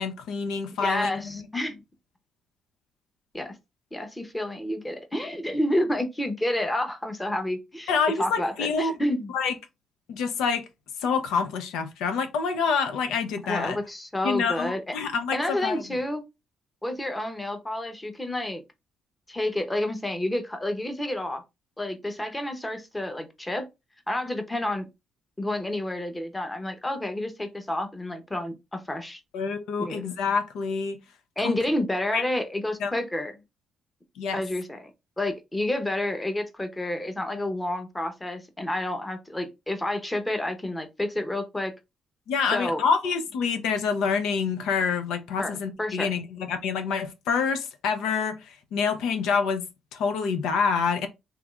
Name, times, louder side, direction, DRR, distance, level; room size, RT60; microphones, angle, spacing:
voice 1, 0.0-1.4 7.9-8.9 9.3-9.5 10.1-10.7 11.0-13.8 14.2-15.8 29.3-31.0 31.4-31.6 32.1-32.2 32.8-32.9 34.2-34.4 42.3-49.6 49.9-51.1, left 5 dB, 90° left, 0.5 m, -27 dB
voice 2, 0.8-1.8 3.3-3.6 3.9-7.9 8.2-9.3 13.4-14.9 15.3-16.2 16.8-18.6 19.3-21.4 21.8-23.7 24.1-24.9 25.4-29.2 29.8-30.1 31.4-33.3 34.3-34.9 35.2-41.7 42.5-42.8 45.4-46.1, left 1 dB, 15° left, 0.8 m, -29 dB
3.4 x 3.0 x 2.3 m
cardioid pair, 90°, 0 cm